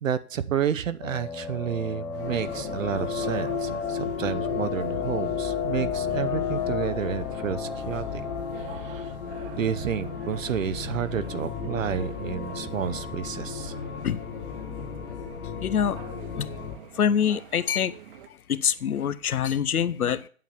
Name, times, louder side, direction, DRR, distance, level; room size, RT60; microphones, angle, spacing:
voice 1, 0.0-8.2 8.6-9.2 9.5-13.7, right 8 dB, 60° right, 11 dB, 0.9 m, -30 dB
sound 1, 1.0-10.3, left 7 dB, 5° left, 0.6 m, -34 dB
sound 2, 2.1-18.3, right 10 dB, 35° right, 1.2 m, -47 dB
sound 3, 2.2-16.8, left 6 dB, 55° left, 2.4 m, -34 dB
voice 2, 15.6-16.0 16.4-16.5 16.9-18.0 18.3-20.3, left 8 dB, 80° left, 15 dB, 0.9 m, -25 dB
9.1 x 7.3 x 7.0 m, 0.44 s
figure-of-eight pair, 135°, 43 cm